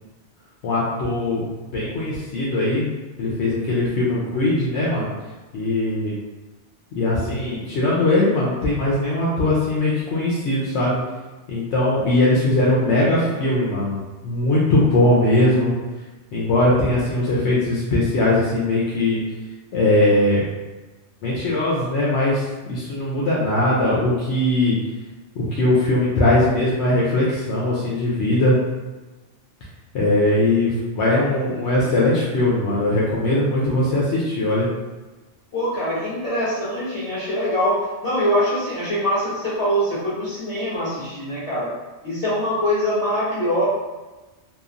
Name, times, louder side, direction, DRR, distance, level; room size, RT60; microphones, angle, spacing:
voice 1, 0.6-2.9 3.2-5.1 5.5-6.1 6.9-11.0 11.5-14.0 14.2-15.7 16.3-19.2 19.7-20.4 21.2-24.8 25.4-28.6 29.9-34.7, left 1 dB, 70° left, -6 dB, 0.9 m, -20 dB
voice 2, 35.5-41.7 42.0-43.7, equal, 15° left, -13 dB, 1.5 m, -23 dB
3.0 x 2.3 x 2.4 m, 1.2 s
omnidirectional pair, 1.2 m